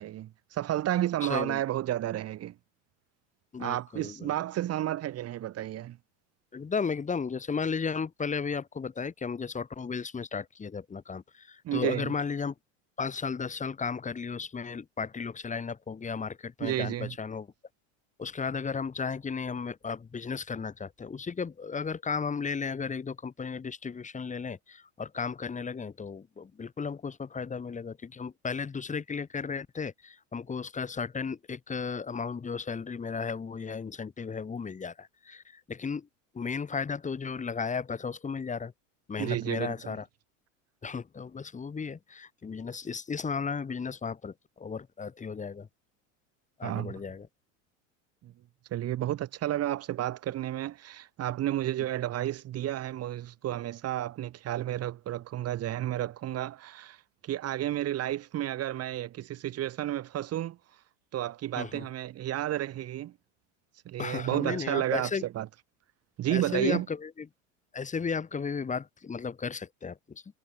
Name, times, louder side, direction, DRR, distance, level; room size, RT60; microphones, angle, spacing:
voice 1, 0.0-2.5 3.6-6.0 11.6-12.1 16.6-17.1 39.2-40.0 46.6-46.9 48.2-48.3 48.7-57.0 57.2-60.6 61.1-63.1 63.9-65.1 65.3-65.5 66.2-66.9, right 13 dB, 40° right, 3.9 m, -31 dB
voice 2, 1.2-1.6 3.5-4.3 6.5-12.5 13.0-17.5 18.2-36.1 36.3-38.7 39.1-40.1 40.8-45.7 46.6-47.3 61.6-61.9 64.0-65.2 66.3-67.3 67.7-70.2, left 5 dB, 20° left, 5.8 m, -34 dB
supercardioid pair, 120°, 38 cm